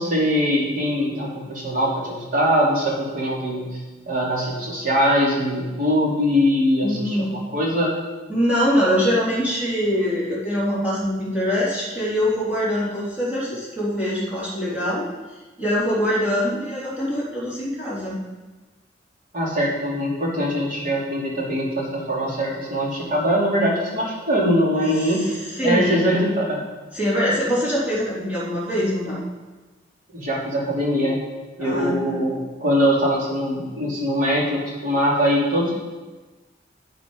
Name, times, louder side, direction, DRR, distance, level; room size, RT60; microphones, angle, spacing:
voice 1, 0.0-3.8 4.1-7.9 19.3-25.2 25.6-26.6 30.1-31.2 31.6-35.7, equal, 50° right, -4 dB, 3.2 m, -22 dB
voice 2, 6.8-7.3 8.3-15.1 15.6-18.2 25.0-25.3 25.6-26.1 26.9-29.3 31.6-32.2, equal, 10° right, -9 dB, 3.6 m, -23 dB
11.0 x 7.8 x 5.5 m, 1.2 s
head